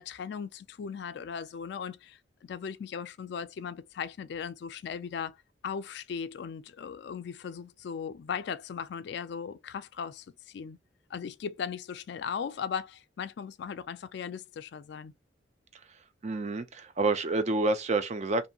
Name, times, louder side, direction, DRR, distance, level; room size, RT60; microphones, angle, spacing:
voice 1, 0.0-5.4 5.6-10.8 11.1-15.1, left 6 dB, 60° left, 0.3 m, -38 dB
voice 2, 15.7-18.5, right 3 dB, 35° right, 0.4 m, -29 dB
2.8 x 2.6 x 2.3 m
head